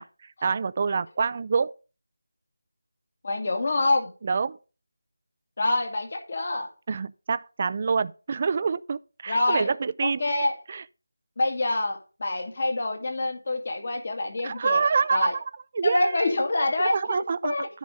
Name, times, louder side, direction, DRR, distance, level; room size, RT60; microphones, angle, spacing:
voice 1, 0.0-1.7 4.2-4.6 6.9-10.2 10.7-10.8 14.4-15.3 15.7-16.3 16.8-17.5, right 5 dB, 30° right, 0.4 m, -26 dB
voice 2, 3.2-4.1 5.6-6.7 9.3-9.7 10.0-10.5 11.4-14.8 15.1-15.3 15.8-17.7, left 2 dB, 45° left, 2.3 m, -26 dB
10.0 x 4.9 x 5.5 m
figure-of-eight pair, 170°, 0 cm